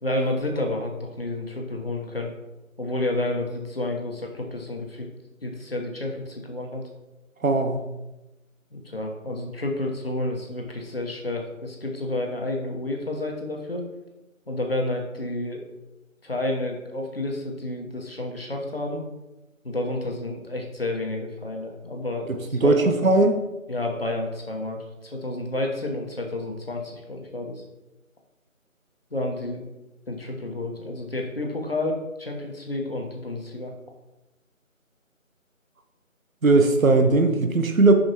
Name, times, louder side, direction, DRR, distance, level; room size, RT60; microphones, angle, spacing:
voice 1, 0.0-2.3 2.8-5.1 5.4-6.8 8.7-13.9 14.5-15.6 16.2-19.0 19.6-22.9 23.7-27.6 29.1-29.6 30.1-33.7, left 1 dB, 45° left, 1 dB, 1.1 m, -30 dB
voice 2, 7.4-7.8 22.5-23.4 36.4-37.9, right 3 dB, 75° right, 5 dB, 0.9 m, -18 dB
6.6 x 5.7 x 2.9 m, 1.0 s
figure-of-eight pair, 165°, 41 cm